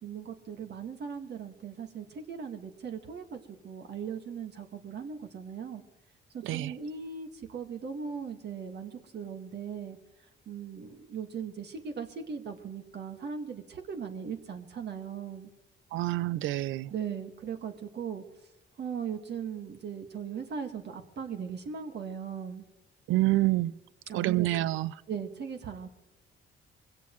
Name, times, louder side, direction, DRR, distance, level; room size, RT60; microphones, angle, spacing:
voice 1, 0.0-3.4 3.6-5.8 6.3-10.0 10.5-15.5 16.9-18.2 18.8-22.6 24.1-24.5 25.1-25.9, right 7 dB, 60° right, 1.8 m, -38 dB
voice 2, 6.4-6.7 15.9-16.9 23.1-23.7 24.1-24.9, right 17 dB, 80° right, 0.5 m, -27 dB
23.5 x 16.5 x 3.1 m
cardioid pair, 90°, 20 cm